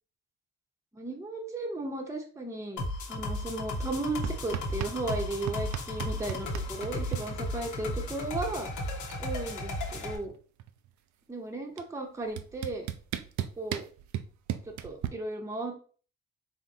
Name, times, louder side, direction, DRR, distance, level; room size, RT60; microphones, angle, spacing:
voice 1, 0.9-2.8 3.1-8.7 9.2-10.3 11.3-12.9 13.6-13.8 14.7-15.9, right 2 dB, 10° right, 2 dB, 0.8 m, -35 dB
sound 1, 2.8-10.1, left 1 dB, 75° left, 1.0 m, -35 dB
sound 2, 4.2-5.2 5.5-7.2 8.5-8.6 8.8-9.3 9.5-10.9 11.8-11.9 12.4-15.1, right 11 dB, 70° right, 0.5 m, -35 dB
3.9 x 3.1 x 2.7 m, 0.41 s
cardioid pair, 90°, 30 cm